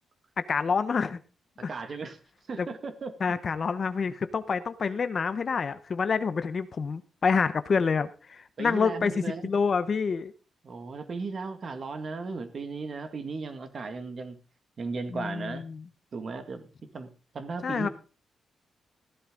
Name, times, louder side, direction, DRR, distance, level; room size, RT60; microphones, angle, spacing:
voice 1, 0.4-1.2 2.6-2.7 3.2-10.3 15.1-15.8 17.6-17.9, left 5 dB, 35° left, 13 dB, 0.8 m, -27 dB
voice 2, 1.6-2.2 2.5-3.4 8.6-9.4 10.6-14.4 14.8-15.6 16.1-16.7 16.9-17.1 17.3-17.9, right 4 dB, 40° right, 8 dB, 1.9 m, -36 dB
15.5 x 11.5 x 3.8 m, 0.34 s
wide cardioid pair, 160°, 0 cm